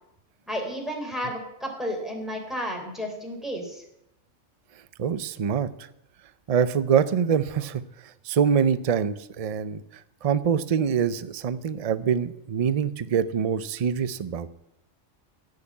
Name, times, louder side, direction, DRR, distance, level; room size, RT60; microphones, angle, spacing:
voice 1, 0.5-3.8, equal, ahead, 0 dB, 3.4 m, -32 dB
voice 2, 5.0-5.7 6.5-7.8 8.2-9.8 10.2-14.5, right 7 dB, 40° right, 15 dB, 0.5 m, -24 dB
15.5 x 6.7 x 8.5 m, 0.83 s
omnidirectional pair, 1.3 m